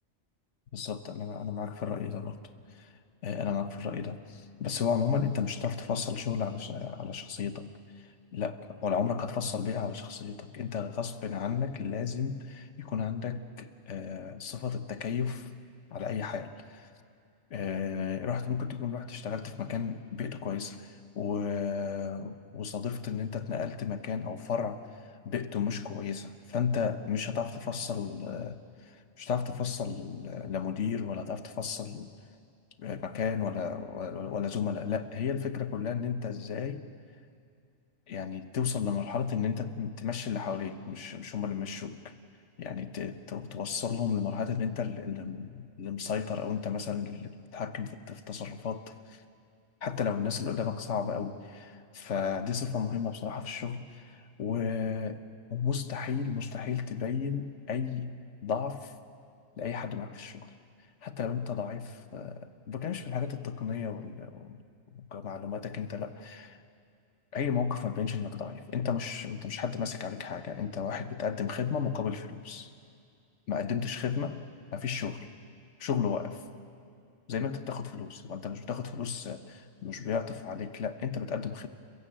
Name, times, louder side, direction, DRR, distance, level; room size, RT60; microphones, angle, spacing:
voice 1, 0.7-2.4 2.7-2.9 3.2-7.7 8.0-15.5 15.9-16.9 17.5-32.1 32.8-36.8 38.1-42.1 42.6-49.2 49.8-55.2 55.5-58.9 59.6-60.5 61.0-64.6 64.9-66.6 67.3-72.7 73.5-74.4 74.7-75.3 75.8-76.4 77.3-81.7, left 6 dB, 75° left, 10 dB, 1.3 m, -33 dB
29.5 x 15.5 x 7.5 m, 2.4 s
omnidirectional pair, 1.2 m